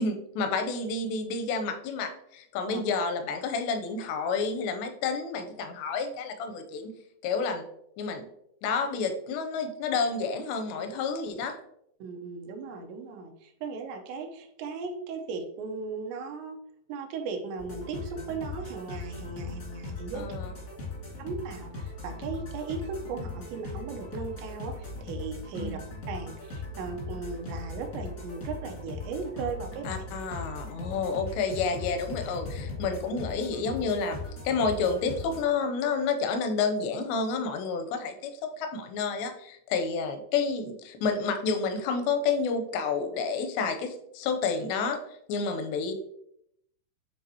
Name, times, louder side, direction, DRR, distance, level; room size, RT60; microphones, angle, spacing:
voice 1, 0.0-6.9 7.2-7.6 8.0-8.3 8.6-11.6 20.1-20.5 25.5-25.8 29.9-34.2 34.4-38.3 38.6-45.0 45.3-45.9, left 4 dB, 85° left, 6 dB, 2.8 m, -30 dB
voice 2, 12.0-16.6 16.9-20.3 21.2-25.8 26.1-30.0, right 4 dB, 85° right, 3 dB, 3.0 m, -37 dB
sound 1, 17.6-35.4, left 2 dB, 65° left, 0.8 m, -39 dB
9.3 x 3.7 x 2.9 m, 0.74 s
omnidirectional pair, 5.0 m